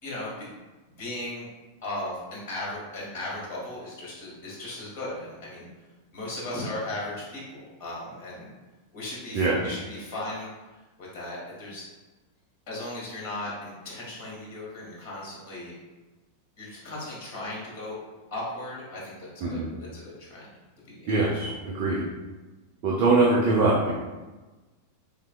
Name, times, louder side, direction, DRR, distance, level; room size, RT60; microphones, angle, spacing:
voice 1, 0.0-0.5 1.0-1.4 1.8-5.7 6.1-8.5 8.9-10.5 11.0-11.8 12.7-15.7 16.6-18.0 18.3-20.5 20.8-21.1 21.4-21.5, left 1 dB, 45° left, -5 dB, 1.4 m, -37 dB
voice 2, 9.3-9.8 19.4-19.7 21.1-22.0 22.8-23.9, right 3 dB, 45° right, -5 dB, 0.6 m, -23 dB
3.4 x 3.0 x 2.3 m, 1.2 s
figure-of-eight pair, 90°, 0 cm